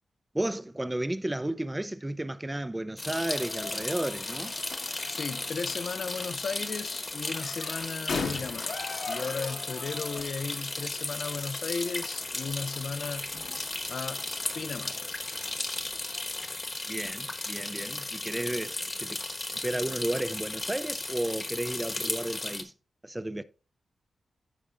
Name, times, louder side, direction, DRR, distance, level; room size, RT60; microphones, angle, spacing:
voice 1, 0.3-4.6 16.9-19.2 19.6-22.7 23.0-23.4, right 1 dB, 10° right, 0.4 m, -33 dB
sound 1, 3.0-16.5, left 4 dB, 75° left, 1.4 m, -42 dB
sound 2, 3.0-22.6, left 2 dB, 25° left, 1.1 m, -35 dB
voice 2, 5.1-8.8 9.1-13.3 13.9-14.2 14.5-15.1, left 5 dB, 55° left, 0.4 m, -35 dB
14.5 x 4.9 x 2.5 m
wide cardioid pair, 145°, 0 cm